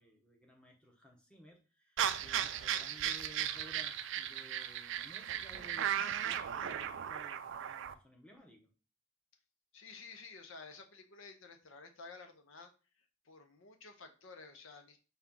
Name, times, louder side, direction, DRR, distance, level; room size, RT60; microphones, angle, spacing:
voice 1, 0.0-8.7, equal, 5° left, 1 dB, 0.9 m, -57 dB
sound 1, 2.0-7.9, right 10 dB, 65° right, 0.4 m, -36 dB
voice 2, 9.7-12.7 13.0-15.0, left 4 dB, 75° left, 5 dB, 0.7 m, -53 dB
5.6 x 2.3 x 3.7 m, 0.34 s
head